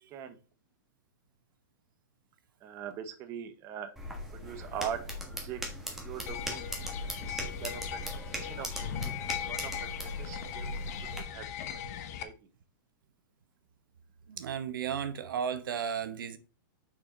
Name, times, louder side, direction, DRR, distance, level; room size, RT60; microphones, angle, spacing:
voice 1, 2.6-3.9 4.4-5.6 5.9-6.7 7.2-10.7 11.2-11.5 11.7-11.8 12.2-12.3, right 9 dB, 25° right, 0.9 m, -42 dB
sound 1, 4.0-11.2, equal, 5° right, 1.4 m, -39 dB
sound 2, 6.3-12.2, left 9 dB, 50° left, 1.0 m, -39 dB
voice 2, 14.3-16.4, right 7 dB, 90° right, 1.0 m, -34 dB
6.2 x 4.9 x 4.2 m
supercardioid pair, 160°, 11 cm